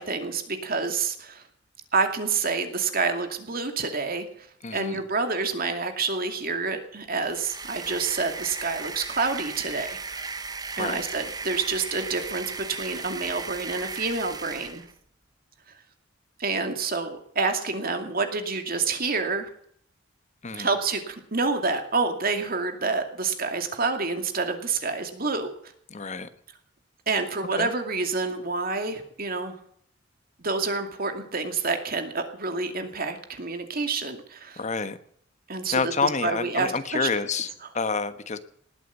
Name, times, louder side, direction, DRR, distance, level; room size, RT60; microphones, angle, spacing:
voice 1, 0.0-1.4 1.9-4.3 4.7-10.3 10.8-14.9 16.4-19.5 20.5-25.5 27.1-29.5 30.4-34.6 35.5-37.1, right 4 dB, 50° right, 6 dB, 2.4 m, -28 dB
voice 2, 4.6-5.0 10.8-11.0 20.4-20.7 25.9-26.3 27.6-27.7 34.6-35.0 35.7-38.4, left 4 dB, 40° left, 11 dB, 1.2 m, -28 dB
sound 1, 7.2-14.9, right 4 dB, 20° right, 1.0 m, -36 dB
19.5 x 8.6 x 8.1 m, 0.65 s
head